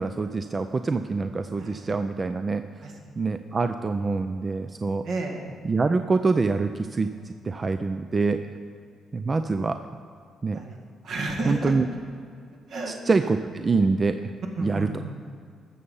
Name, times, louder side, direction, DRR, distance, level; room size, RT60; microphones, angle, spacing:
voice 1, 0.0-2.6 3.2-5.0 5.6-7.1 7.4-8.4 9.1-9.8 10.4-10.6 11.5-11.9 12.9-14.3 14.6-14.9, right 4 dB, 30° right, 9 dB, 0.4 m, -25 dB
voice 2, 1.6-1.9 2.8-2.9 5.0-5.5 10.5-10.8 11.0-12.0 12.7-13.3 14.6-15.1, right 2 dB, 70° right, 1 dB, 2.1 m, -32 dB
13.0 x 7.0 x 5.5 m, 2.3 s
cardioid pair, 90°, 0 cm